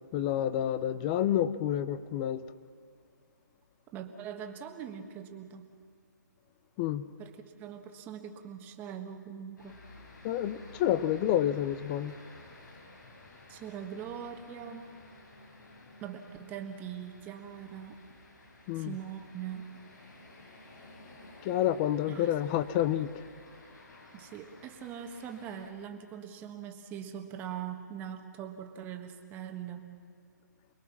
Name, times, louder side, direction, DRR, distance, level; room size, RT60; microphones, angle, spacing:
voice 1, 0.1-2.4 6.8-7.1 10.2-12.1 18.7-19.0 21.4-23.2, left 11 dB, 25° left, 14 dB, 0.7 m, -29 dB
voice 2, 3.9-5.7 7.2-9.8 13.5-14.9 16.0-18.0 18.7-19.7 22.1-22.3 24.1-29.9, right 9 dB, 20° right, 5 dB, 1.5 m, -42 dB
Scottish village traffic noise, 9.6-25.7, left 2 dB, 70° left, 5.9 m, -54 dB
28.5 x 21.5 x 6.0 m, 2.1 s
hypercardioid pair, 150°, 10 cm